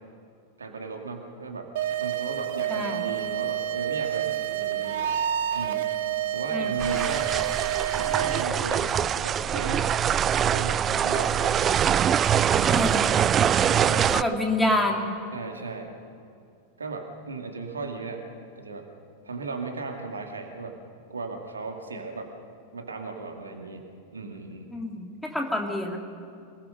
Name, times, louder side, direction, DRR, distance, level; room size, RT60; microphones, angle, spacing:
voice 1, 0.6-1.7 2.0-5.0 5.5-5.9 6.3-7.4 7.9-9.9 10.5-11.6 13.7-14.1 15.3-15.9 16.8-18.3 18.6-18.9 19.2-20.8 21.1-22.3 22.7-23.9 24.1-24.7, right 4 dB, 75° right, 3 dB, 2.2 m, -36 dB
sound 1, 1.8-8.4, right 11 dB, 55° right, 0.8 m, -28 dB
voice 2, 2.7-3.0 6.5-6.7 12.6-13.1 14.1-15.1 24.7-26.0, left 1 dB, 5° left, 1 dB, 2.8 m, -27 dB
sound 2, 6.8-14.2, right 9 dB, 25° right, 0.5 m, -23 dB
26.5 x 20.0 x 5.5 m, 2.4 s
figure-of-eight pair, 90°, 0 cm